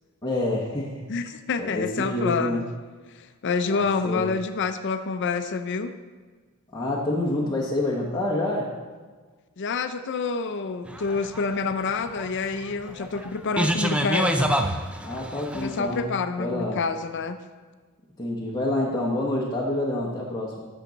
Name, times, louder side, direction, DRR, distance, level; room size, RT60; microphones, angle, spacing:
voice 1, 0.2-1.0 1.6-2.6 3.7-4.3 6.7-8.7 15.0-16.1 16.4-16.8 18.2-20.7, left 1 dB, 15° left, -4 dB, 1.0 m, -27 dB
voice 2, 1.1-2.6 3.1-6.0 9.6-14.6 15.5-17.4, left 4 dB, 55° left, 9 dB, 0.5 m, -28 dB
sound 1, 10.9-15.9, equal, 5° right, 0.4 m, -27 dB
11.0 x 7.0 x 4.0 m, 1.4 s
head